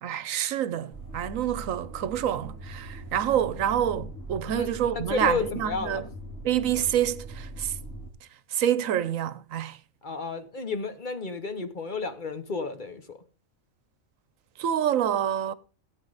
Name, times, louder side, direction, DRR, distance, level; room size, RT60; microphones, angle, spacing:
voice 1, 0.0-6.1 6.4-7.8 8.5-9.8 14.6-15.5, right 10 dB, 75° right, 1.1 m, -27 dB
sound 1, 0.9-8.1, right 1 dB, 15° left, 3.1 m, -41 dB
voice 2, 4.5-6.0 10.0-13.2, left 4 dB, 40° left, 1.2 m, -32 dB
16.0 x 8.9 x 4.0 m
omnidirectional pair, 1.4 m